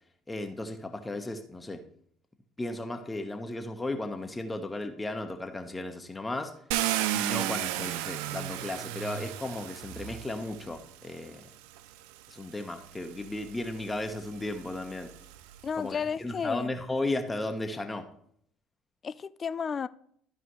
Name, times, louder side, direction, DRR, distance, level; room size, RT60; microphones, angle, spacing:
voice 1, 0.3-1.8 2.6-6.5 7.1-11.4 12.3-15.1 15.8-18.1, left 2 dB, 15° left, 1.2 m, -35 dB
Car, 6.7-10.8 11.8-11.9 12.4-15.7, right 14 dB, 85° right, 0.4 m, -34 dB
voice 2, 15.6-16.7 19.0-19.9, left 6 dB, 35° left, 0.4 m, -32 dB
13.5 x 4.9 x 3.2 m
supercardioid pair, 90°, 0 cm